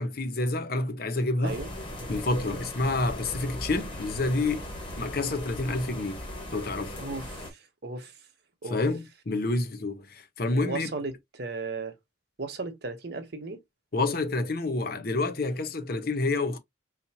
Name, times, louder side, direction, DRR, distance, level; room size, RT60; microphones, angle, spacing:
voice 1, 0.0-1.6 2.1-4.7 5.0-6.2 6.5-7.0 8.7-10.9 13.9-16.6, left 2 dB, 50° left, 0.7 m, -28 dB
sound 1, 1.4-7.5, left 1 dB, 25° left, 1.4 m, -38 dB
voice 2, 6.9-8.2 8.6-8.8 10.5-12.0 12.4-13.6, right 3 dB, 55° right, 1.0 m, -36 dB
4.2 x 2.7 x 2.8 m
head